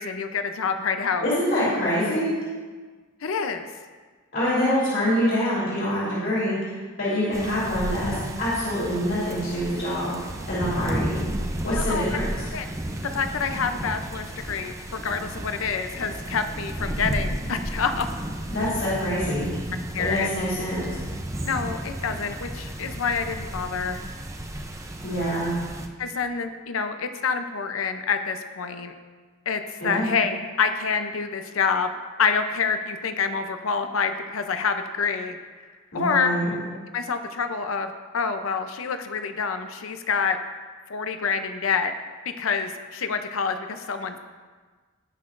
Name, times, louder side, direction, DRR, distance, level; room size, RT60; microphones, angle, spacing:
voice 1, 0.0-1.3 3.2-3.7 11.7-12.2 12.5-12.6 13.0-18.1 19.9-20.3 21.4-24.0 26.0-28.9 29.5-31.9 32.2-35.4 35.9-36.4 36.9-40.4 40.9-41.9 42.4-44.2, left 5 dB, 85° left, 8 dB, 0.6 m, -27 dB
voice 2, 1.2-2.4 4.3-10.1 10.5-11.2 11.6-12.4 18.5-19.5 20.0-20.9 25.0-25.5 29.8-30.1 35.9-36.5, equal, 65° left, -8 dB, 2.9 m, -25 dB
sound 1, 7.3-25.9, right 1 dB, 15° right, 0.5 m, -33 dB
17.0 x 5.8 x 2.5 m, 1.4 s
head